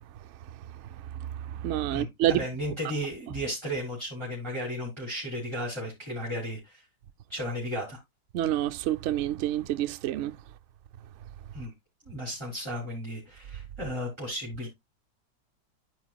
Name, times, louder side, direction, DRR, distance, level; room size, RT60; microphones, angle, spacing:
voice 1, 1.2-2.4 8.3-10.4, right 12 dB, 85° right, 0.6 m, -28 dB
voice 2, 1.9-6.8 7.3-8.0 11.5-11.7 12.0-14.7, equal, 15° right, 3.2 m, -34 dB
13.0 x 4.8 x 2.3 m
omnidirectional pair, 1.9 m